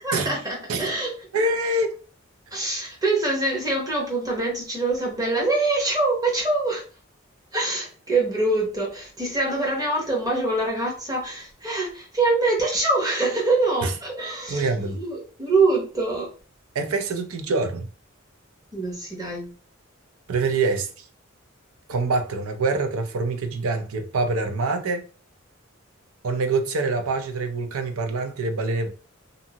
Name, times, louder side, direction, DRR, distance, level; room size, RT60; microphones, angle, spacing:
voice 1, 0.0-1.1 2.5-6.8 7.5-14.7 14.9-16.3 18.7-19.5, right 2 dB, 15° right, 0.9 m, -24 dB
voice 2, 1.3-1.9 13.8-13.9 14.5-15.0 16.7-17.9 20.3-21.0 21.9-25.0 26.2-28.9, right 3 dB, 85° right, 0.5 m, -25 dB
2.7 x 2.6 x 2.8 m
head